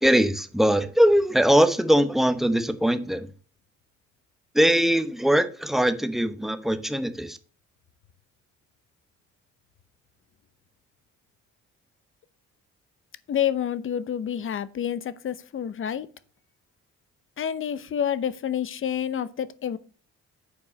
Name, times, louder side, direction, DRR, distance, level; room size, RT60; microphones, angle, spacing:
voice 1, 0.0-3.3 4.5-7.4, equal, ahead, 0.9 m, -21 dB
voice 2, 13.3-16.1 17.4-19.8, left 9 dB, 45° left, 0.7 m, -28 dB
8.4 x 4.6 x 5.3 m
cardioid pair, 90°, 30 cm